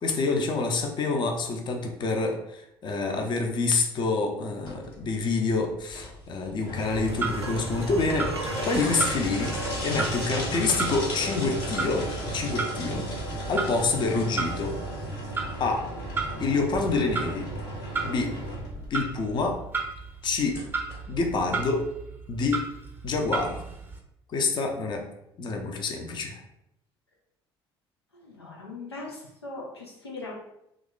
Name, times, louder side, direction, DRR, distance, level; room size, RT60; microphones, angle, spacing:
voice 1, 0.0-12.1 12.3-13.1 13.5-14.7 15.6-15.9 16.4-17.5 18.0-18.3 18.9-19.6 20.2-20.6 21.1-21.9 22.3-22.6 23.0-23.6 24.3-25.0 25.4-26.4, left 3 dB, 35° left, 3 dB, 0.6 m, -27 dB
sound 1, 4.7-21.7, equal, 60° left, 1.4 m, -35 dB
Clock, 6.8-24.0, right 4 dB, 15° right, 0.7 m, -35 dB
sound 2, 6.8-10.4 13.3-13.4, right 1 dB, 85° right, 0.4 m, -38 dB
voice 2, 28.1-30.3, left 3 dB, 85° left, -2 dB, 0.6 m, -40 dB
2.9 x 2.4 x 3.8 m, 0.81 s
figure-of-eight pair, 55°, 13 cm